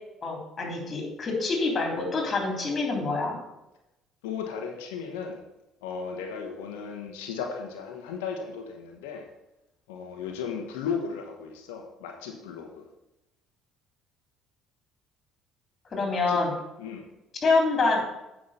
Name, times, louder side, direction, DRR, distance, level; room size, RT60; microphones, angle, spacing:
voice 1, 0.2-3.4 15.9-16.5 17.4-18.0, left 3 dB, 40° left, 1 dB, 3.5 m, -26 dB
voice 2, 4.2-5.4 5.8-9.3 9.9-12.9 16.1-16.4 16.8-17.0, left 6 dB, 85° left, 3 dB, 1.1 m, -35 dB
8.8 x 5.8 x 5.6 m, 0.93 s
hypercardioid pair, 65°, 0 cm